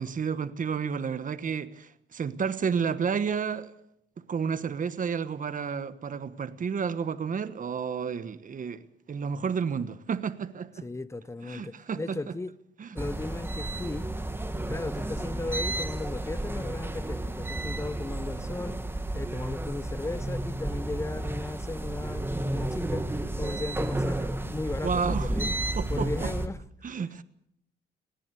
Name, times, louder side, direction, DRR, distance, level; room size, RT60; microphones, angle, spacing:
voice 1, 0.0-3.7 4.3-10.8 11.4-12.2 12.8-12.9 24.8-25.3 25.8-26.3 26.8-27.2, right 6 dB, 40° right, 1.2 m, -31 dB
voice 2, 10.8-12.5 12.9-14.1 14.7-18.8 19.1-23.1 23.4-25.5 25.9-26.6, left 2 dB, 15° left, 0.8 m, -36 dB
sound 1, 13.0-26.5, right 1 dB, 10° right, 1.8 m, -32 dB
19.5 x 18.5 x 8.2 m
cardioid pair, 90°, 20 cm